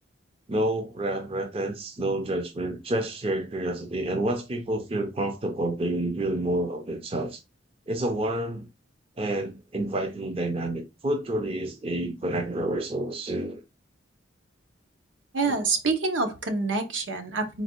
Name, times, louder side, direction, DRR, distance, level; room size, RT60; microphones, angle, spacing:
voice 1, 0.5-7.4 7.9-8.7 9.2-13.6 15.5-15.6, right 1 dB, 30° right, 0.5 m, -29 dB
voice 2, 15.3-17.6, right 3 dB, 75° right, 0.9 m, -27 dB
4.1 x 2.3 x 4.3 m
head